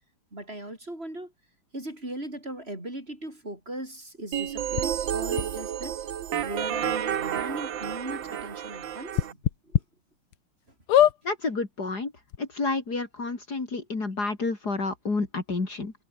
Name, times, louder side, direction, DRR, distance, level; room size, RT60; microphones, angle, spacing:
voice 1, 0.3-1.3 1.7-6.0 6.4-9.4 9.7-9.8, right 1 dB, 25° right, 6.6 m, -38 dB
sound 1, 4.3-9.3, right 10 dB, 65° right, 1.8 m, -30 dB
sound 2, 4.8-4.9 5.4-5.5 6.4-6.5 6.9-7.0 7.4-7.5 9.1-9.8 10.3-10.4 10.9-11.2 12.0-12.1 12.3-12.4, left 11 dB, 90° left, 2.0 m, -21 dB
voice 2, 11.2-12.1 12.4-15.9, left 3 dB, 45° left, 3.9 m, -30 dB
omnidirectional pair, 2.3 m